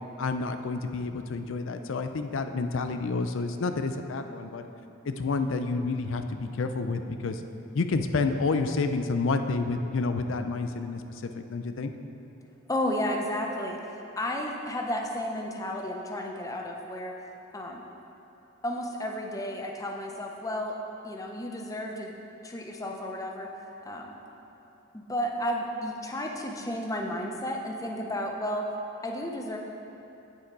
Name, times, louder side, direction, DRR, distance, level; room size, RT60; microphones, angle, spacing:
voice 1, 0.2-4.7 5.0-7.4 7.7-11.9, left 3 dB, 65° left, 8 dB, 0.4 m, -29 dB
voice 2, 12.7-17.1 17.5-17.8 18.6-20.7 21.0-22.1 22.4-23.5 23.8-24.1 24.9-28.6 29.0-29.6, left 1 dB, 15° left, 1 dB, 0.6 m, -32 dB
8.4 x 6.6 x 4.7 m, 3.0 s
head